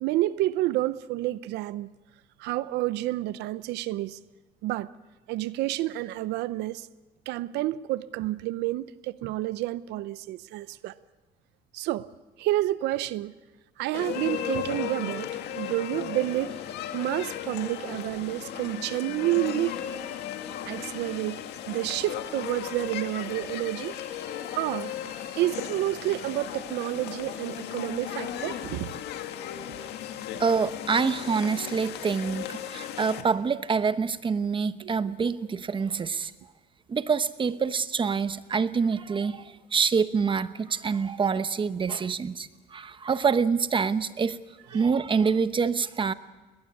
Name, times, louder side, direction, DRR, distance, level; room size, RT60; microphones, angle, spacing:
voice 1, 0.0-1.9 2.4-4.2 4.6-4.9 5.3-6.9 7.3-10.9 11.7-12.1 12.4-13.3 13.8-15.3 15.6-16.6 16.9-19.8 20.6-24.0 24.5-28.9 34.8-35.1 44.7-44.8, right 16 dB, 85° right, 0.7 m, -29 dB
sound 1, 13.9-33.2, left 10 dB, 80° left, 1.9 m, -36 dB
voice 2, 30.4-36.3 36.9-44.4 44.7-46.1, right 5 dB, 30° right, 0.9 m, -26 dB
21.5 x 20.0 x 8.5 m
cardioid pair, 110°, 17 cm